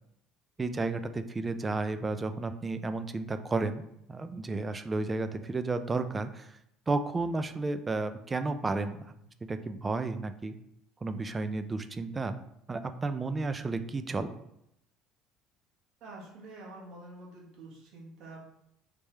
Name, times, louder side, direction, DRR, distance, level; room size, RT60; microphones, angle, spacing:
voice 1, 0.6-3.8 4.1-6.6 6.9-9.1 9.4-10.6 11.0-12.4 12.7-14.4, right 3 dB, 20° right, 10 dB, 0.3 m, -32 dB
voice 2, 16.0-18.4, right 2 dB, 60° right, -3 dB, 1.4 m, -47 dB
3.3 x 3.1 x 3.2 m, 0.77 s
supercardioid pair, 100°, 0 cm